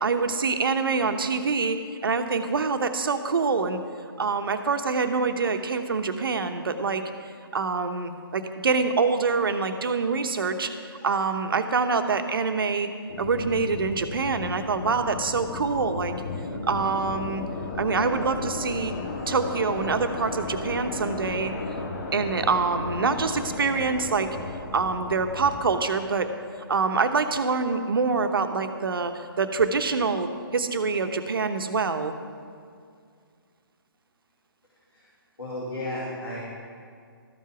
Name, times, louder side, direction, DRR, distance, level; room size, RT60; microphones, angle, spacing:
voice 1, 0.0-3.8 4.2-7.0 7.5-10.7 11.0-12.9 13.2-16.1 16.7-17.4 17.8-18.9 19.3-21.5 22.1-24.3 24.7-26.3 26.7-32.1, right 4 dB, 65° right, 8 dB, 1.0 m, -25 dB
sound 1, 13.1-25.8, left 3 dB, 45° left, 1.6 m, -34 dB
voice 2, 35.4-36.4, left 1 dB, 85° left, -6 dB, 2.5 m, -33 dB
13.0 x 7.4 x 5.9 m, 2.2 s
figure-of-eight pair, 140°, 13 cm